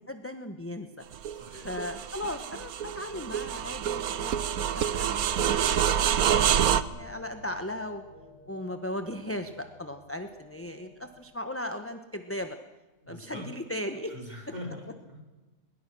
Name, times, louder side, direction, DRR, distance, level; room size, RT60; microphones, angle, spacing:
voice 1, 0.1-0.9 1.6-4.4 4.8-5.1 5.5-5.6 5.9-6.1 6.7-8.0 8.5-12.6 13.1-14.1, left 1 dB, 10° left, 7 dB, 1.0 m, -37 dB
sound 1, 1.1-6.8, right 9 dB, 80° right, 1.3 m, -27 dB
voice 2, 1.3-1.8 13.0-13.5 14.1-15.3, left 1 dB, 30° right, 1 dB, 4.8 m, -42 dB
sound 2, 3.9-11.2, left 2 dB, 75° left, 6.0 m, -52 dB
22.0 x 22.0 x 6.2 m, 1.1 s
omnidirectional pair, 1.5 m